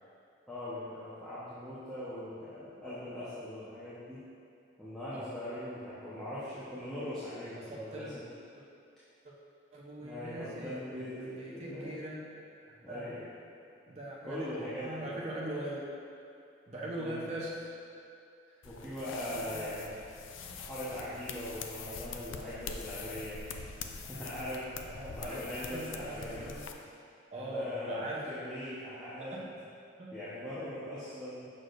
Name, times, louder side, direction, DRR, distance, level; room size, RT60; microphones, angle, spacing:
voice 1, 0.5-4.2 4.8-8.2 10.0-12.0 12.8-13.2 14.2-15.1 17.0-17.2 18.6-19.9 20.6-23.4 24.1-24.6 25.1-26.6 27.4-29.3 30.1-31.5, left 1 dB, 5° left, -14 dB, 1.0 m, -41 dB
voice 2, 5.1-5.4 7.7-8.2 8.5-8.6 9.2-9.3 9.7-12.2 12.7-13.1 13.9-14.5 14.8-15.8 16.7-17.7 18.5-18.6 19.1-19.7 20.4-20.7 24.0-24.2 24.8-26.7 27.3-28.2 29.2-29.4 30.0-30.1, right 1 dB, 35° right, -5 dB, 0.8 m, -41 dB
sound 1, 18.6-26.7, left 5 dB, 85° left, 0.4 m, -44 dB
6.5 x 6.1 x 2.6 m, 2.5 s
head